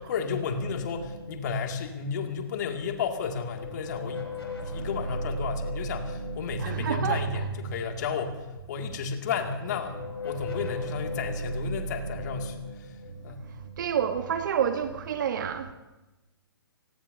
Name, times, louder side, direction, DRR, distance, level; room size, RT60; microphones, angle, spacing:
voice 1, 0.0-4.3 4.6-12.9 13.2-13.4, left 6 dB, 45° left, 2.3 m, -32 dB
sound 1, 0.6-2.8 3.1-8.3 9.2-14.7, equal, 80° left, 4.1 m, -38 dB
voice 2, 6.6-7.3 13.8-15.7, right 8 dB, 50° right, 1.2 m, -28 dB
28.0 x 18.5 x 2.7 m
figure-of-eight pair, 125°, 13 cm